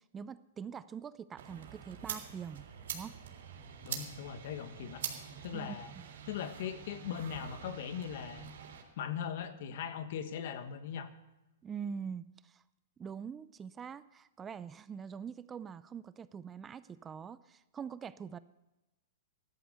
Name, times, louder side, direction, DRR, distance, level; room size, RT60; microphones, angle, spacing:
voice 1, 0.0-2.7 2.9-3.2 5.5-6.0 11.6-12.6 13.0-18.4, right 7 dB, 20° right, 16 dB, 0.5 m, -44 dB
sound 1, 1.4-8.8, right 8 dB, 70° right, 3.6 m, -45 dB
voice 2, 3.8-5.0 5.4-5.9 6.2-8.5 9.0-11.1, left 8 dB, 60° left, 10 dB, 1.4 m, -39 dB
14.0 x 11.0 x 6.7 m, 1.0 s
hypercardioid pair, 135°, 0 cm